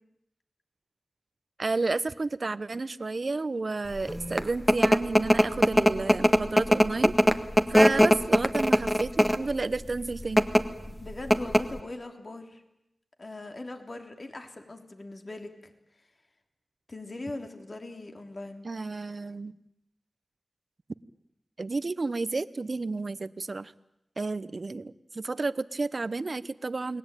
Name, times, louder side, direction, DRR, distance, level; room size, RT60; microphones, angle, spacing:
voice 1, 1.6-7.1 7.7-10.4 18.6-19.5 21.6-23.7 24.2-27.0, right 3 dB, 50° right, 15 dB, 1.0 m, -31 dB
sound 1, 4.1-9.5 10.2-10.6 11.0-11.1 11.3-11.8, equal, 10° left, 1.8 m, -20 dB
voice 2, 10.9-12.6 13.2-15.7 16.9-18.7, left 2 dB, 45° left, 5 dB, 3.3 m, -40 dB
29.5 x 20.0 x 9.1 m, 0.85 s
wide cardioid pair, 60°, 0 cm